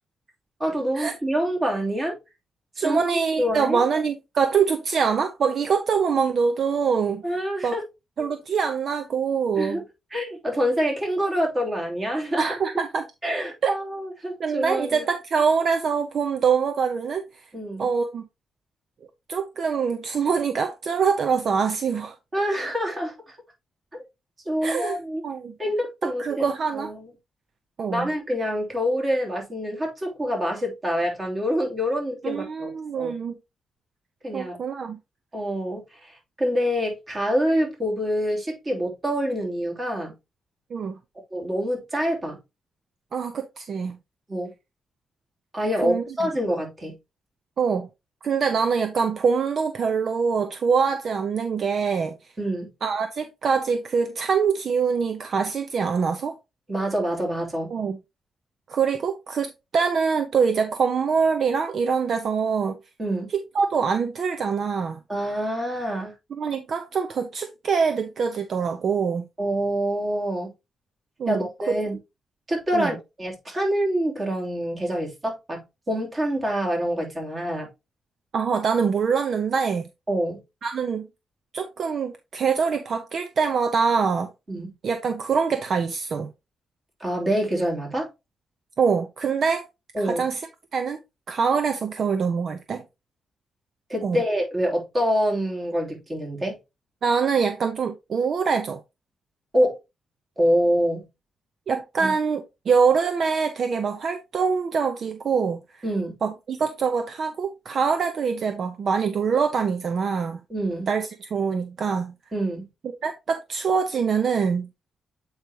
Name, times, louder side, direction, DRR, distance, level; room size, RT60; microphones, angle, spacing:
voice 1, 0.6-2.2 2.8-3.0 3.4-3.8 7.2-7.8 9.6-9.8 10.1-12.5 13.2-15.0 17.5-17.9 22.3-23.4 24.4-25.2 25.6-26.5 26.7-27.1 27.9-32.7 33.0-33.1 34.2-34.6 35.3-40.1 41.3-42.4 44.3-44.5 45.5-46.9 52.4-52.7 56.7-57.7 63.0-63.3 65.1-66.1 69.4-70.5 71.3-72.0 72.5-75.6 75.9-77.7 80.1-80.4 84.5-84.7 87.0-88.1 89.9-90.3 93.9-96.6 99.5-99.8 100.4-101.1 102.0-102.1 105.8-106.1 110.5-110.9 112.3-112.7, equal, 25° right, 2.9 m, -26 dB
voice 2, 2.8-7.2 7.6-7.7 8.2-9.8 12.4-13.0 13.6-13.8 14.4-17.4 17.8-18.2 19.3-22.1 24.6-25.0 25.2-25.5 26.0-26.9 27.8-28.1 32.2-33.4 34.3-35.0 40.7-41.0 43.1-44.0 45.8-46.3 47.6-47.9 48.2-52.2 52.8-56.3 57.7-58.0 58.7-62.8 63.3-65.0 66.3-69.2 71.2-71.5 72.7-72.9 78.3-79.8 80.6-81.1 81.5-84.3 84.8-86.3 88.8-89.7 90.0-90.4 90.7-91.0 91.3-92.8 94.0-94.2 97.0-98.8 101.7-105.8 106.2-110.4 110.9-112.1 113.0-114.7, right 6 dB, 55° right, 0.7 m, -24 dB
8.0 x 4.9 x 2.9 m
cardioid pair, 120°, 0 cm